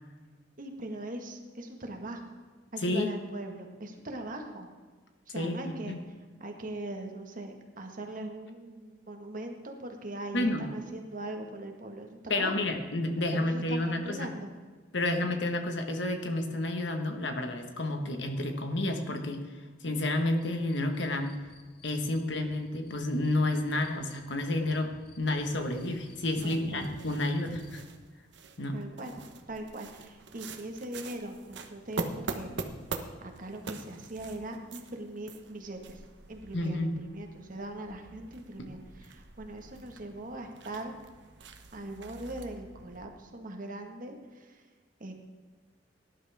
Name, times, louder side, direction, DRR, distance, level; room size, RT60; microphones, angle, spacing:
voice 1, 0.6-2.4 2.7-4.7 5.3-6.0 6.4-12.8 13.3-14.5 26.4-26.9 28.7-29.1 29.5-32.5 33.2-36.0 36.3-40.9 41.7-44.6 45.0-45.1, right 1 dB, 50° right, 3 dB, 1.8 m, -41 dB
voice 2, 5.3-6.0 10.3-10.6 12.3-14.3 14.9-19.5 19.8-21.4 21.8-24.9 25.2-27.8 28.6-28.7 36.5-36.9 38.6-38.7, left 1 dB, 75° left, 5 dB, 1.6 m, -30 dB
sound 1, 20.4-27.9, left 1 dB, 60° left, 1.3 m, -52 dB
sound 2, 25.4-43.1, right 3 dB, 70° right, 1.2 m, -44 dB
18.5 x 11.0 x 3.6 m, 1.5 s
head